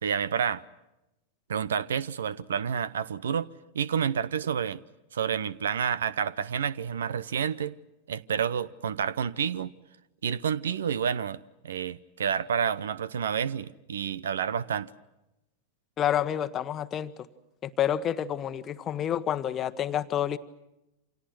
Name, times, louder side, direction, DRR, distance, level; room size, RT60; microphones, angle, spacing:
voice 1, 0.0-0.6 1.5-3.5 3.7-4.8 5.1-7.8 8.1-9.7 10.2-14.9, right 7 dB, 65° right, 0.8 m, -29 dB
voice 2, 16.0-17.1 17.6-20.4, left 10 dB, 30° left, 1.2 m, -28 dB
29.0 x 27.0 x 6.1 m
figure-of-eight pair, 90°, 0 cm